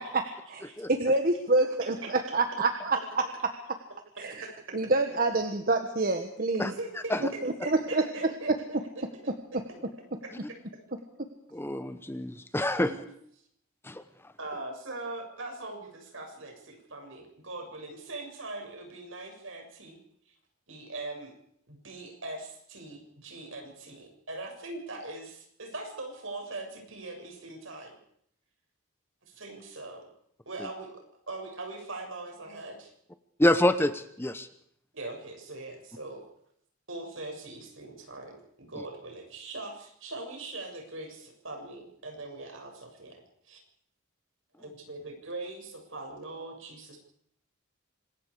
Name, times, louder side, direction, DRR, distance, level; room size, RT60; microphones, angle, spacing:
voice 1, 0.5-3.2 4.2-4.5 4.7-6.7 7.4-8.5, right 2 dB, 45° right, 6 dB, 1.6 m, -27 dB
voice 2, 4.4-4.8 6.7-7.2 7.6-9.3 12.7-13.1 14.4-20.0 20.3-20.4 20.7-21.3 21.7-27.9 29.2-30.1 30.5-31.0 31.3-32.9 34.9-36.2 36.9-43.6 44.6-47.0, right 2 dB, 65° right, 2 dB, 7.2 m, -41 dB
voice 3, 11.5-12.9 13.9-14.0 33.4-34.5, left 1 dB, 10° left, 11 dB, 0.9 m, -26 dB
26.0 x 21.5 x 5.0 m, 0.69 s
head